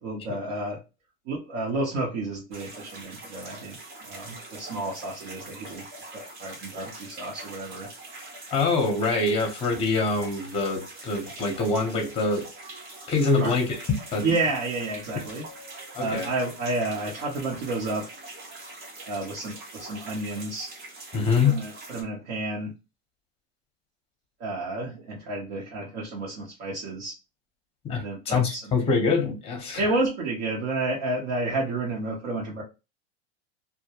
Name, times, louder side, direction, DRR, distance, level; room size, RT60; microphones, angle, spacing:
voice 1, 0.0-0.8 1.3-3.8 4.1-5.9 6.1-7.9 13.3-13.5 14.2-15.4 16.0-18.1 19.1-20.7 21.4-22.8 24.4-27.1 28.0-28.8 29.8-32.6, right 2 dB, 55° right, 0.8 m, -30 dB
sound 1, 2.5-22.0, right 2 dB, 30° right, 0.8 m, -43 dB
voice 2, 8.5-12.5 13.1-13.8 14.1-14.3 15.9-16.3 21.1-21.6 27.8-29.9, left 4 dB, 15° left, 0.7 m, -25 dB
2.2 x 2.2 x 2.8 m
supercardioid pair, 140°, 33 cm